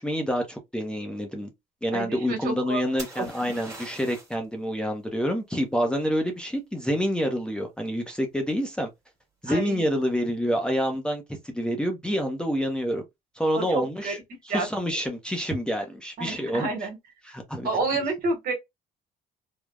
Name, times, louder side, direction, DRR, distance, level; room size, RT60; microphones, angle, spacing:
voice 1, 0.0-1.5 1.8-8.9 9.4-13.0 13.4-14.2 14.4-16.7 17.3-17.7, equal, 5° left, 0.6 m, -27 dB
voice 2, 1.9-2.8 3.2-3.3 9.5-9.8 13.5-14.1 14.5-14.7 16.2-17.0 17.6-18.5, right 3 dB, 60° right, 1.2 m, -29 dB
sound 1, 3.0-4.5 8.1-8.6, right 2 dB, 15° right, 1.4 m, -42 dB
3.2 x 2.0 x 2.3 m
cardioid pair, 110°, 17 cm